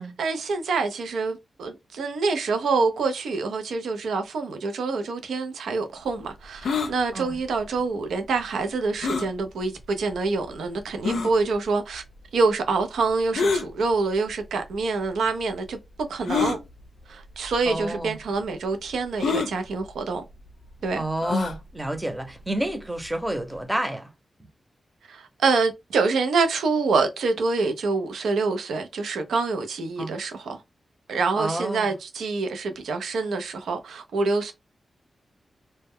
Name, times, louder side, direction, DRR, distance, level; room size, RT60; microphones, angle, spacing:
voice 1, 0.2-12.0 12.3-15.8 16.1-16.6 17.1-20.2 20.8-21.1 25.1-30.6 31.1-34.5, right 4 dB, 90° right, 0.5 m, -26 dB
sound 1, 6.6-6.9 9.0-9.3 10.1-10.2 11.0-11.3 13.3-13.7 14.7-14.8 16.3-16.6 17.5-17.7 17.9-18.0 19.2-19.5 21.2-21.6, left 5 dB, 80° left, 0.4 m, -25 dB
voice 2, 17.7-18.1 21.0-24.1 30.0-30.2 31.4-31.9, right 1 dB, 15° right, 0.7 m, -29 dB
2.1 x 2.0 x 3.5 m
cardioid pair, 45°, 0 cm